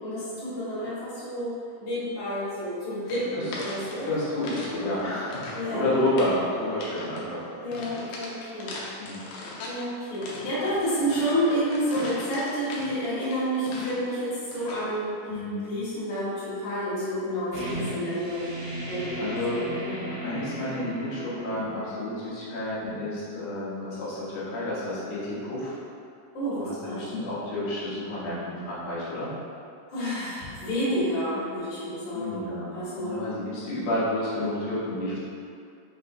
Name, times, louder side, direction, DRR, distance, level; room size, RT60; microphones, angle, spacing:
voice 1, 0.0-4.1 5.5-5.9 7.6-8.7 9.6-15.4 15.7-18.5 18.9-20.0 26.3-27.0 29.9-33.2, equal, 45° left, -11 dB, 1.8 m, -30 dB
sound 1, 2.9-8.2, right 2 dB, 80° right, 2.3 m, -41 dB
sound 2, 3.1-4.7 5.0-5.7 6.0-6.4 6.8-7.2 7.7-9.8 10.2-14.1 14.5-14.9, left 2 dB, 80° left, 2.3 m, -39 dB
voice 2, 4.1-7.4 9.0-9.2 15.3-15.7 17.7-18.1 19.2-19.7 20.1-25.8 26.5-29.3 32.1-35.2, left 1 dB, 65° left, -9 dB, 1.9 m, -30 dB
sound 3, 17.5-23.0, right 1 dB, 55° right, 1.9 m, -37 dB
5.8 x 3.6 x 2.5 m, 2.4 s
omnidirectional pair, 4.1 m